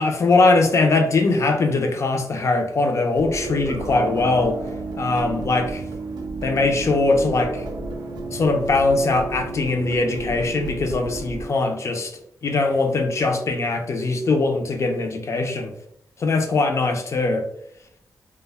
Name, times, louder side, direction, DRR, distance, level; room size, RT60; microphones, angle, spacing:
voice 1, 0.0-4.6 4.9-5.8 6.4-7.6 8.3-12.1 12.4-15.7 16.2-17.4, left 3 dB, 45° left, 4 dB, 0.4 m, -21 dB
sound 1, 3.1-11.5, right 3 dB, 80° right, 0.4 m, -32 dB
2.2 x 2.1 x 3.3 m, 0.74 s
wide cardioid pair, 140°, 7 cm